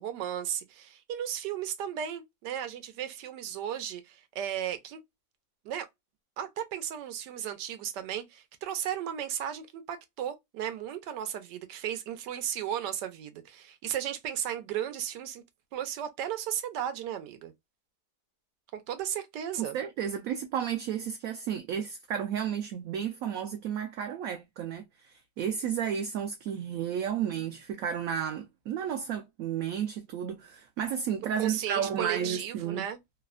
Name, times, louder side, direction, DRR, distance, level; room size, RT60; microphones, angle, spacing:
voice 1, 0.0-5.0 5.6-5.9 6.4-15.4 15.7-17.5 18.7-19.8 31.4-33.0, right 10 dB, 85° right, 1.3 m, -35 dB
voice 2, 19.7-32.9, right 8 dB, 70° right, 0.8 m, -32 dB
3.2 x 2.0 x 2.2 m
omnidirectional pair, 1.8 m